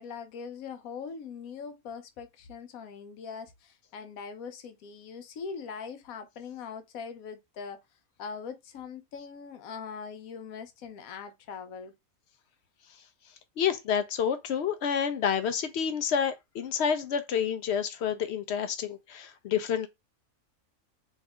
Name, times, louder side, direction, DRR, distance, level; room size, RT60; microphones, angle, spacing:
voice 1, 0.0-7.8 8.2-11.9, left 6 dB, 80° left, 1.2 m, -41 dB
voice 2, 13.6-19.9, left 7 dB, 65° left, 0.7 m, -29 dB
3.2 x 2.8 x 3.5 m
omnidirectional pair, 1.5 m